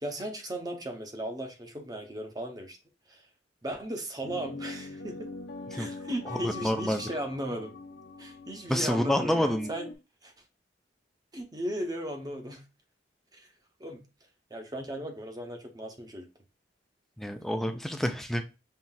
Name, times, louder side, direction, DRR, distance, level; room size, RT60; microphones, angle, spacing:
voice 1, 0.0-2.8 3.1-3.2 3.6-5.3 5.7-7.7 8.2-9.9 10.2-10.3 11.3-12.6 13.3-13.5 13.8-14.0 14.5-16.3, right 1 dB, 20° right, 4 dB, 0.8 m, -36 dB
sound 1, 4.2-9.9, left 3 dB, 80° left, 0.7 m, -42 dB
voice 2, 6.3-7.0 8.7-9.7 17.2-18.4, equal, ahead, 6 dB, 0.4 m, -28 dB
5.6 x 3.2 x 2.3 m, 0.29 s
head